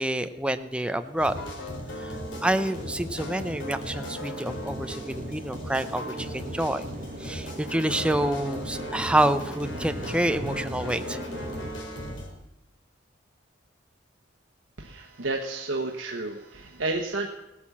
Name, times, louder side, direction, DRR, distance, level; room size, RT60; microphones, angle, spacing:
voice 1, 0.0-1.4 2.0-2.2 2.4-6.8 7.2-11.2, right 1 dB, 5° right, 9 dB, 0.6 m, -27 dB
sound 1, 0.9-1.0 1.2-11.7, right 1 dB, 40° right, 1.3 m, -41 dB
sound 2, 1.2-12.3, equal, 75° left, 2.7 m, -37 dB
voice 2, 14.8-17.3, right 2 dB, 90° right, 1 dB, 1.2 m, -31 dB
16.5 x 8.7 x 7.3 m, 0.94 s
head